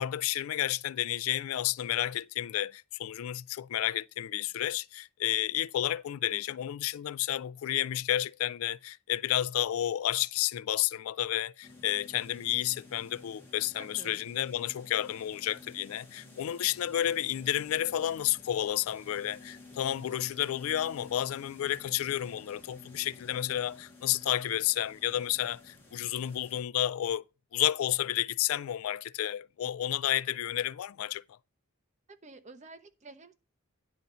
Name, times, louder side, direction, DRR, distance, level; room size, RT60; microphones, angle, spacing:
voice 1, 0.0-27.2 27.5-31.2, left 12 dB, 80° left, 0.3 m, -31 dB
sound 1, 11.6-26.6, left 2 dB, 10° left, 2.1 m, -53 dB
voice 2, 13.7-14.2 32.1-33.3, right 3 dB, 35° right, 0.9 m, -50 dB
10.5 x 4.0 x 5.5 m
head